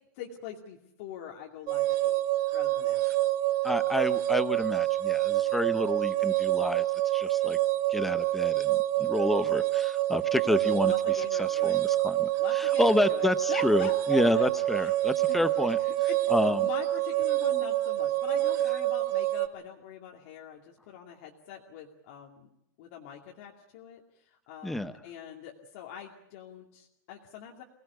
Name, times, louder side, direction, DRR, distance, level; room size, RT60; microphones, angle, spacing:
voice 1, 0.1-2.2 2.5-3.0 10.7-11.8 12.4-14.9 15.3-15.4 15.6-22.5 22.8-27.6, left 8 dB, 40° left, 0 dB, 2.5 m, -44 dB
sound 1, 1.7-19.5, right 15 dB, 25° right, 0.8 m, -27 dB
voice 2, 3.6-6.8 7.1-7.6 7.9-15.8 16.3-16.7 24.6-24.9, left 1 dB, ahead, 12 dB, 0.8 m, -29 dB
24.5 x 19.0 x 8.3 m, 0.81 s
supercardioid pair, 170°, 10 cm